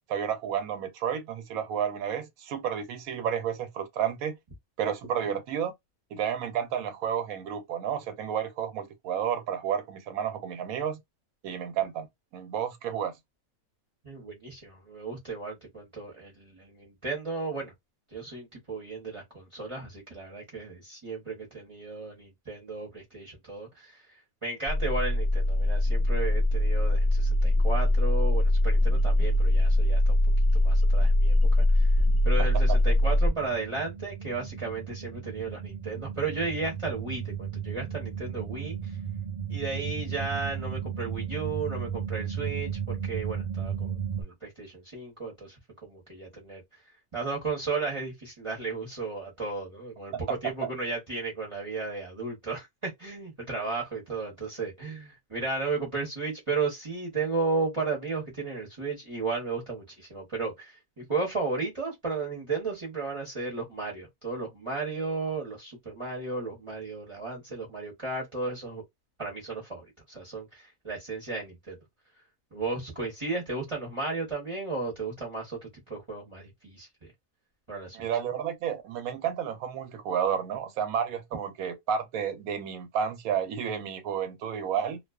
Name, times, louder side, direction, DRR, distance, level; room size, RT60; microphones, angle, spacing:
voice 1, 0.1-4.4 4.8-5.7 6.1-11.0 11.4-12.1 12.3-13.1 50.1-50.2 77.9-85.0, right 8 dB, 80° right, 1.1 m, -31 dB
voice 2, 14.0-17.7 18.1-24.0 24.4-30.2 30.5-31.9 32.2-39.0 39.5-46.6 47.1-68.8 69.2-71.8 72.5-77.1 77.7-78.0, right 3 dB, 25° right, 0.8 m, -34 dB
sound 1, 24.7-44.2, left 1 dB, 60° right, 0.4 m, -25 dB
2.4 x 2.3 x 2.3 m
omnidirectional pair, 1.5 m